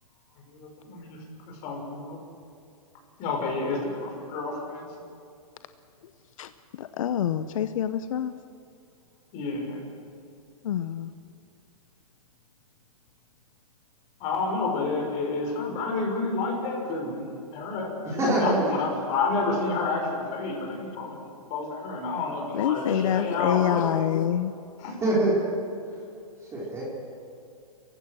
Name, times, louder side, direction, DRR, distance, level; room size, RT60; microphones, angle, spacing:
voice 1, 0.5-2.2 3.2-4.9 9.3-9.8 14.2-23.8 24.8-24.9, left 3 dB, 35° left, 0 dB, 6.5 m, -30 dB
voice 2, 6.8-8.3 10.6-11.1 22.5-24.5, left 10 dB, 65° left, 11 dB, 0.8 m, -26 dB
voice 3, 18.0-18.6 25.0-25.4 26.5-26.8, right 1 dB, 15° right, -5 dB, 4.9 m, -24 dB
28.0 x 16.0 x 6.4 m, 2.5 s
hypercardioid pair, 140°, 19 cm